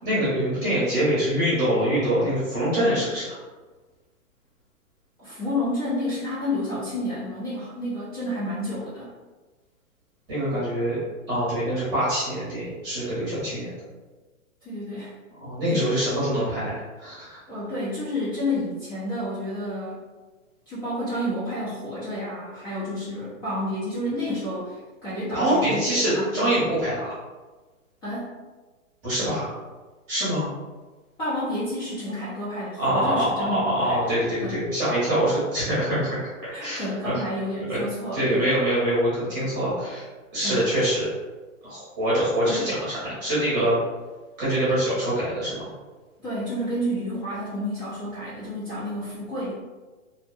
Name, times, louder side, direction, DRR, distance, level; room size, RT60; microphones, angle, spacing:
voice 1, 0.0-3.4 10.3-11.0 11.3-13.7 15.4-17.4 25.3-27.1 29.0-29.5 30.1-30.5 32.8-37.2 37.7-37.8 38.1-40.0 40.3-41.1 41.6-43.8 44.4-45.7, right 1 dB, 25° right, -10 dB, 0.9 m, -24 dB
voice 2, 5.2-9.1 14.6-15.1 15.6-16.0 17.5-20.0 20.7-26.3 28.0-28.4 31.2-34.0 34.4-34.6 36.5-38.4 40.4-40.6 46.2-49.5, left 1 dB, 20° left, -12 dB, 0.5 m, -30 dB
2.6 x 2.0 x 2.4 m, 1.3 s
hypercardioid pair, 155°, 41 cm